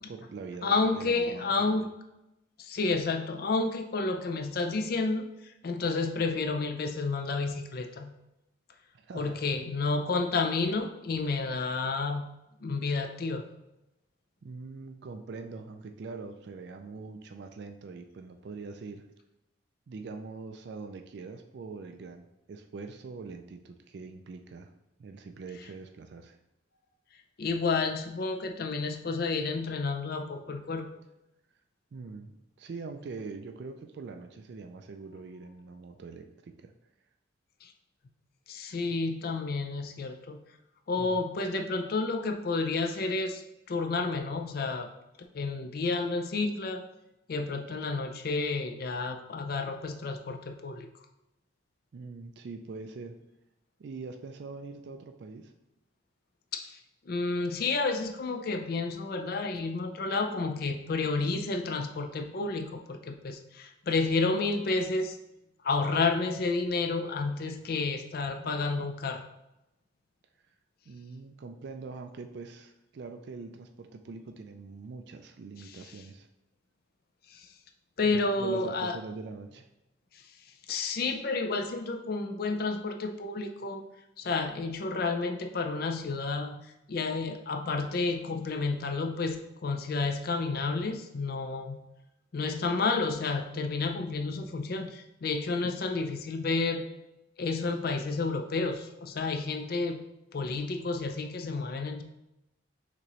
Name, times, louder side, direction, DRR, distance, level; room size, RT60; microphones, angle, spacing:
voice 1, 0.0-1.8 8.9-9.4 14.4-19.0 19.9-24.7 25.0-26.4 31.9-36.7 41.0-41.2 51.9-53.2 53.8-55.5 70.9-76.3 78.0-79.7, right 4 dB, 55° right, 6 dB, 0.3 m, -43 dB
voice 2, 0.6-2.0 2.6-5.3 5.6-8.2 9.1-12.3 12.6-13.4 27.4-30.9 37.6-37.7 38.5-40.4 40.9-43.4 43.7-44.9 45.3-46.9 47.3-50.9 56.5-56.8 57.1-65.2 65.6-69.2 75.6-75.7 77.3-77.5 78.0-79.0 80.1-80.2 80.7-83.8 84.2-86.6 86.9-91.8 92.3-96.9 97.4-100.0 100.3-102.0, left 3 dB, 50° left, 6 dB, 0.4 m, -30 dB
6.1 x 3.0 x 2.9 m, 0.90 s
head